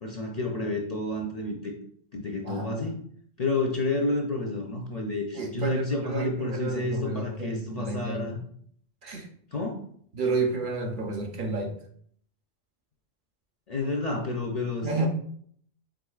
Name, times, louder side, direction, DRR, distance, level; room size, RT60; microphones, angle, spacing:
voice 1, 0.0-1.7 2.1-3.0 3.4-8.4 9.5-9.9 13.7-15.1, left 2 dB, 50° left, 1 dB, 0.5 m, -30 dB
voice 2, 5.4-8.4 9.0-9.3 10.1-11.7 14.8-15.1, right 3 dB, 55° right, 2 dB, 0.7 m, -31 dB
4.9 x 3.7 x 2.3 m, 0.62 s
omnidirectional pair, 1.1 m